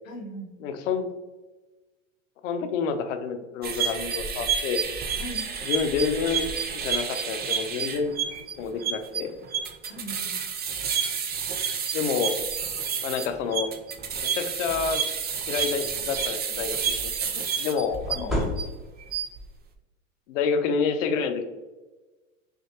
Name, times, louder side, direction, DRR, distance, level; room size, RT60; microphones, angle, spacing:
voice 1, 0.0-0.5 5.1-5.6 9.8-10.4 18.1-18.5, right 1 dB, 85° left, 1 dB, 1.0 m, -40 dB
voice 2, 0.6-1.1 2.4-4.8 5.6-6.5 6.7-8.1 8.6-9.3 11.9-12.4 13.0-13.7 14.2-15.0 15.5-18.3 20.3-21.4, left 6 dB, 70° left, 7 dB, 0.7 m, -28 dB
sound 1, 3.6-18.6 19.0-19.4, right 7 dB, 25° right, 0.5 m, -29 dB
sound 2, 14.0-14.3 14.7-14.9 15.1-16.2 17.9-19.2, left 1 dB, ahead, 1.0 m, -32 dB
5.7 x 2.5 x 2.9 m, 1.2 s
hypercardioid pair, 95°, 39 cm